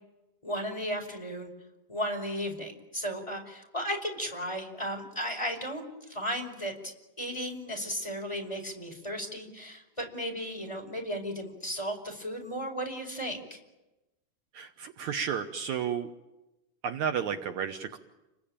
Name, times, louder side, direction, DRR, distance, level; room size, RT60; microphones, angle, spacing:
voice 1, 0.4-1.5 1.9-13.6, equal, 10° left, 2 dB, 4.9 m, -35 dB
voice 2, 14.5-16.1 16.8-18.0, right 8 dB, 70° right, 7 dB, 2.3 m, -32 dB
30.0 x 22.0 x 8.8 m, 1.0 s
omnidirectional pair, 3.7 m